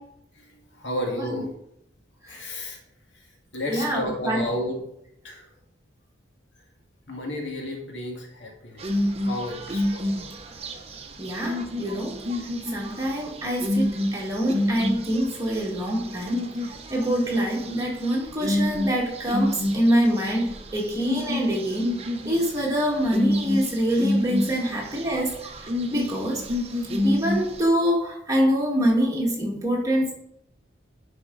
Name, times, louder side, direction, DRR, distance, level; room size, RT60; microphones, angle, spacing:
voice 1, 0.3-1.5 2.3-2.8 3.1-3.3 3.5-4.8 5.2-5.5 7.1-10.3, left 1 dB, 85° left, 0 dB, 2.0 m, -32 dB
voice 2, 3.7-4.4 11.2-12.2 12.7-16.4 16.9-21.9 22.2-25.3 25.9-26.4 27.0-30.1, equal, 20° right, -3 dB, 2.1 m, -25 dB
sound 1, 8.8-27.6, left 1 dB, 35° right, 0.9 m, -29 dB
10.5 x 5.0 x 4.0 m, 0.76 s
head